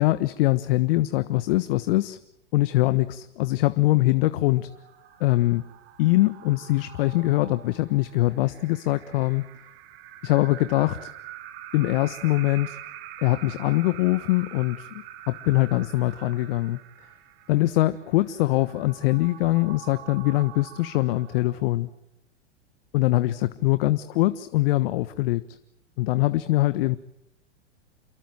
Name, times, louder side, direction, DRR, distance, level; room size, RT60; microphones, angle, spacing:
voice 1, 0.0-2.2 2.5-4.7 5.2-5.7 6.0-9.5 10.2-11.1 11.7-12.8 13.2-16.8 17.5-21.9 22.9-25.4 26.0-27.0, left 18 dB, 50° left, 13 dB, 1.3 m, -23 dB
sound 1, 4.6-22.0, right 12 dB, 55° right, 3.0 m, -45 dB
28.5 x 23.0 x 7.7 m, 0.83 s
hypercardioid pair, 105°, 36 cm